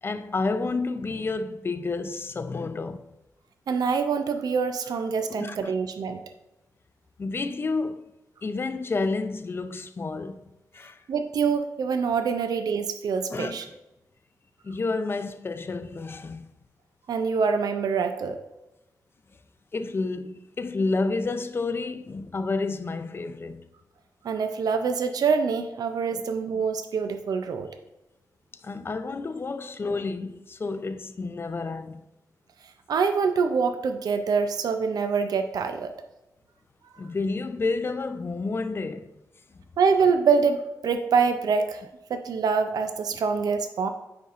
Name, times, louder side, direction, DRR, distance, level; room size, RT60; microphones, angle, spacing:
voice 1, 0.0-3.1 5.3-5.7 7.2-8.1 8.4-10.4 10.7-11.0 13.3-13.6 14.6-16.5 19.7-23.6 26.1-26.2 28.6-32.0 37.0-39.1, left 3 dB, 35° left, 0.4 m, -30 dB
voice 2, 3.7-6.2 11.1-13.6 17.1-18.4 24.2-27.7 32.9-35.9 39.8-41.8 42.1-43.9, right 5 dB, 70° right, 0.4 m, -25 dB
9.3 x 4.3 x 2.5 m
wide cardioid pair, 100°, 7 cm